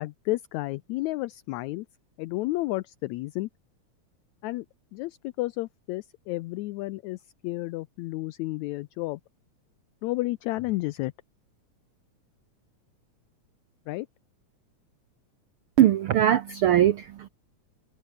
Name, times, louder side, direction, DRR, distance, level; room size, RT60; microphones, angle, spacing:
voice 1, 0.0-1.9 2.2-3.5 4.4-4.7 4.9-9.2 10.0-11.1 13.9-14.1, left 19 dB, 80° left, 1.8 m, -31 dB
voice 2, 15.8-17.3, right 11 dB, 75° right, 1.2 m, -21 dB
omnidirectional pair, 3.5 m